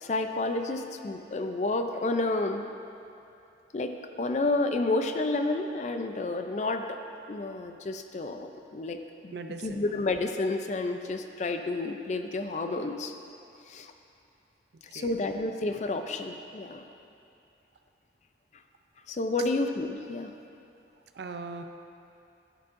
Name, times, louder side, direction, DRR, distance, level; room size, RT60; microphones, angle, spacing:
voice 1, 0.0-2.6 3.7-7.0 7.3-9.4 9.6-13.1 13.7-13.9 14.9-16.8 19.1-20.3, left 2 dB, 40° left, 6 dB, 0.4 m, -30 dB
voice 2, 9.3-9.8 14.9-15.2 21.1-21.6, right 4 dB, 70° right, 7 dB, 0.4 m, -39 dB
11.0 x 7.4 x 2.5 m, 2.7 s
head